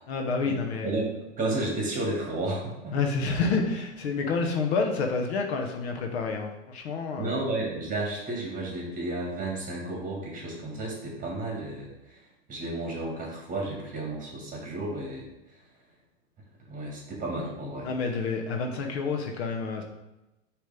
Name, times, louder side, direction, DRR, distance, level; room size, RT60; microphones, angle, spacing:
voice 1, 0.1-0.9 2.9-7.4 17.8-19.8, left 4 dB, 60° left, 3 dB, 1.1 m, -28 dB
voice 2, 0.8-3.0 7.2-12.2 12.5-15.6 16.7-17.9, right 2 dB, 20° right, -1 dB, 2.2 m, -32 dB
6.2 x 3.3 x 5.2 m, 0.98 s
hypercardioid pair, 110°, 36 cm